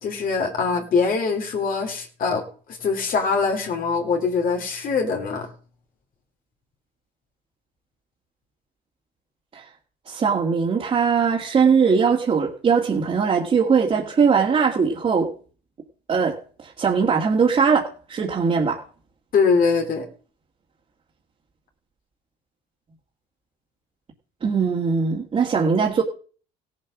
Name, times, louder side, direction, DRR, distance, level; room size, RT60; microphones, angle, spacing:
voice 1, 0.0-5.5 19.3-20.1, left 5 dB, 55° left, 3 dB, 2.6 m, -23 dB
voice 2, 10.1-15.3 16.1-16.4 16.6-18.8 24.4-26.0, right 5 dB, 35° right, -3 dB, 2.2 m, -20 dB
16.5 x 7.6 x 6.1 m, 0.41 s
cardioid pair, 110°, 17 cm